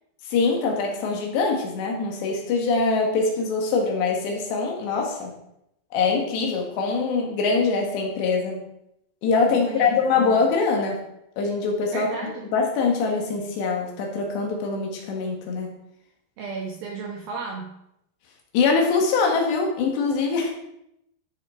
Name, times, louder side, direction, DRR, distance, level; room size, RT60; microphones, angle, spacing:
voice 1, 0.3-5.3 5.9-8.6 9.2-11.0 11.4-12.1 12.5-15.7 18.5-20.5, left 4 dB, 65° left, 1 dB, 4.0 m, -23 dB
voice 2, 9.5-10.3 11.9-12.5 16.4-17.8, right 5 dB, 80° right, 1 dB, 2.1 m, -34 dB
14.5 x 6.6 x 4.9 m, 0.79 s
omnidirectional pair, 5.9 m